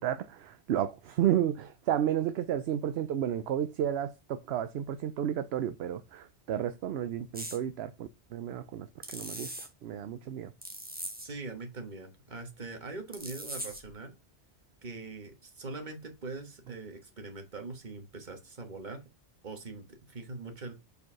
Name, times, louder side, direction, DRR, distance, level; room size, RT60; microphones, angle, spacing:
voice 1, 0.0-8.9 9.1-10.5, right 10 dB, 70° right, 0.8 m, -32 dB
sound 1, 7.3-7.6 9.0-9.7 10.6-11.3 13.1-13.9, right 1 dB, 10° right, 1.3 m, -40 dB
voice 2, 11.2-14.2 14.8-19.0 19.4-20.7, right 3 dB, 45° right, 1.5 m, -42 dB
5.2 x 4.7 x 5.6 m
omnidirectional pair, 1.2 m